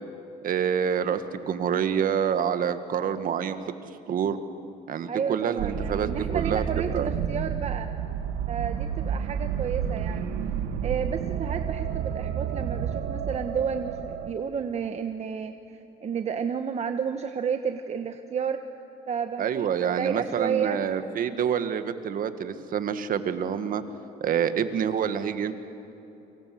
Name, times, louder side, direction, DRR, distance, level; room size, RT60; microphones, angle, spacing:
voice 1, 0.4-3.6 4.1-4.4 4.9-6.6 6.9-7.1 19.4-23.8 24.2-25.5, right 8 dB, 55° right, 10 dB, 1.8 m, -27 dB
voice 2, 5.1-7.9 8.5-10.3 10.8-18.6 19.1-20.8, right 7 dB, 40° right, 7 dB, 1.1 m, -31 dB
sound 1, 5.6-14.3, right 8 dB, 85° right, 1.6 m, -30 dB
29.0 x 25.0 x 7.8 m, 2.9 s
cardioid pair, 110°, 17 cm